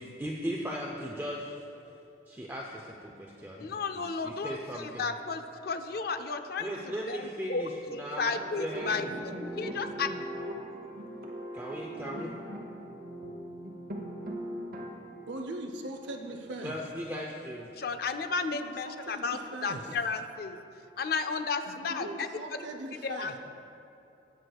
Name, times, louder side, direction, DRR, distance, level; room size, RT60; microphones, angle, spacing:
voice 1, 0.0-1.5 2.3-5.1 6.6-9.1 11.5-12.3 16.6-17.7, equal, 10° right, -2 dB, 0.5 m, -38 dB
voice 2, 3.6-10.1 17.8-20.6 21.0-22.6 23.0-23.4, left 4 dB, 55° left, 9 dB, 0.5 m, -33 dB
sound 1, 8.4-14.9, equal, 50° right, 0.9 m, -39 dB
voice 3, 15.3-16.8 18.5-19.8 21.7-23.3, right 1 dB, 80° right, 4 dB, 0.6 m, -40 dB
18.5 x 6.4 x 2.3 m, 2.7 s
head